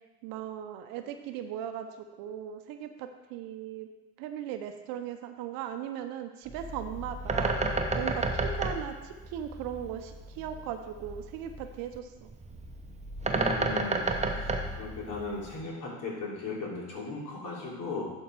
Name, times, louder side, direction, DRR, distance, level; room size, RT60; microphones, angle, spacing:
voice 1, 0.2-3.9 4.2-12.3 14.4-14.5, right 9 dB, 60° right, 7 dB, 0.8 m, -38 dB
Bird, 6.5-15.6, right 2 dB, 15° right, 1.0 m, -32 dB
voice 2, 13.3-14.1 14.3-18.1, left 3 dB, 50° left, -3 dB, 3.2 m, -37 dB
11.0 x 4.5 x 4.6 m, 1.1 s
hypercardioid pair, 70°, 40 cm